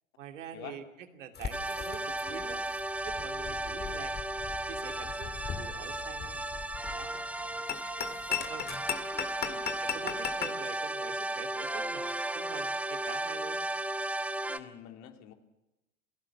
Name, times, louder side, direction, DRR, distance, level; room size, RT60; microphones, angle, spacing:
voice 1, 0.2-2.6 2.9-4.2 4.7-6.4 6.8-8.7 9.8-12.1 12.3-13.6, right 9 dB, 70° right, 6 dB, 2.8 m, -46 dB
sound 1, 1.3-10.5, left 9 dB, 25° left, 2.0 m, -39 dB
sound 2, 1.5-14.6, right 1 dB, 5° right, 1.0 m, -35 dB
voice 2, 9.4-9.7 14.5-15.3, left 11 dB, 45° left, 6 dB, 3.2 m, -47 dB
28.0 x 17.5 x 7.2 m, 0.97 s
hypercardioid pair, 90°, 39 cm